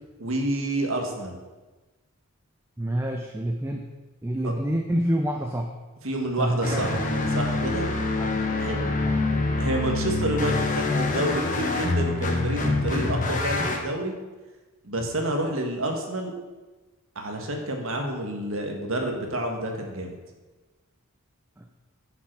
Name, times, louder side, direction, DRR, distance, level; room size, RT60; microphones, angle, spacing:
voice 1, 0.2-1.4 4.4-4.5 6.0-7.0 7.3-7.9 8.6-8.9 9.6-14.1 14.8-16.3 17.2-20.2, right 1 dB, 65° right, 3 dB, 1.7 m, -29 dB
voice 2, 2.8-3.9 4.2-5.7 6.4-7.0 8.2-8.4 9.0-9.5 15.0-15.1 21.6-21.7, equal, 10° right, 3 dB, 0.6 m, -28 dB
sound 1, 6.6-13.8, left 2 dB, 35° left, 1.1 m, -26 dB
10.5 x 6.1 x 6.1 m, 1.2 s
head